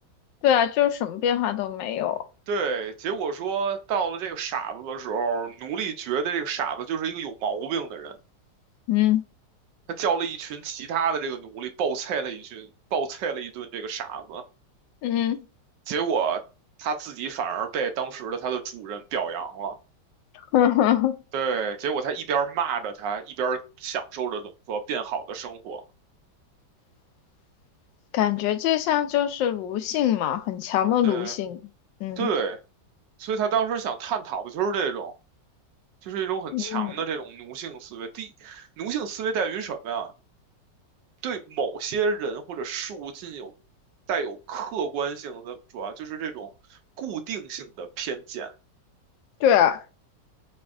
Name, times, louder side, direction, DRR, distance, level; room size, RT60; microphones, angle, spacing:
voice 1, 0.4-2.2 8.9-9.2 15.0-15.4 20.5-21.2 28.1-31.6 32.0-32.3 36.5-36.9 49.4-49.8, left 11 dB, 90° left, 1.4 m, -23 dB
voice 2, 2.5-8.2 9.9-14.5 15.9-16.4 16.8-19.8 21.3-25.8 31.0-31.4 32.2-32.6 33.2-35.1 36.0-40.1 41.2-43.5 44.1-48.5, right 6 dB, 80° right, 1.3 m, -29 dB
4.7 x 4.3 x 2.4 m
omnidirectional pair, 1.9 m